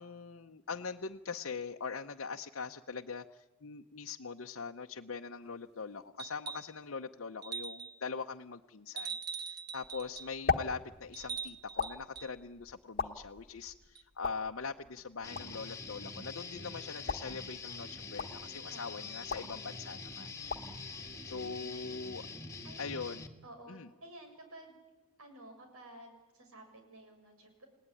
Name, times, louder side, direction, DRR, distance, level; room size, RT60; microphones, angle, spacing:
voice 1, 0.0-20.3 21.2-22.3 22.8-23.3 23.7-23.9, left 5 dB, 65° left, 3 dB, 0.8 m, -42 dB
sound 1, 6.2-6.8 7.4-8.0 9.0-10.3 11.1-12.3 14.0-14.1, right 6 dB, 45° right, 1.3 m, -42 dB
sound 2, 9.8-22.0, left 5 dB, 40° left, 1.2 m, -41 dB
Guitar, 15.2-23.3, left 4 dB, 15° left, 2.0 m, -45 dB
voice 2, 18.7-19.3 21.3-21.6 22.6-22.8 23.4-24.8 25.2-27.7, right 1 dB, 80° right, 4 dB, 7.3 m, -53 dB
30.0 x 17.5 x 9.9 m, 1.2 s
head